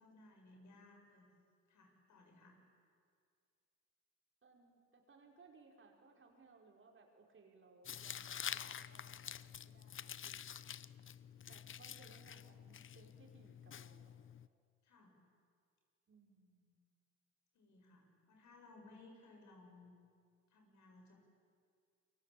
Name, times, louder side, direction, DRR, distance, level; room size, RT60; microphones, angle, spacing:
voice 1, 0.0-1.3 1.7-2.6 14.8-15.1 17.5-19.9 20.5-21.1, left 2 dB, 70° left, 2 dB, 7.4 m, -61 dB
voice 2, 4.4-10.6 11.4-14.1 16.1-16.8, right 4 dB, 40° right, 1 dB, 5.4 m, -65 dB
Tearing, 7.8-14.5, left 9 dB, 40° left, 0.7 m, -48 dB
28.0 x 23.0 x 8.7 m, 2.2 s
cardioid pair, 90°, 30 cm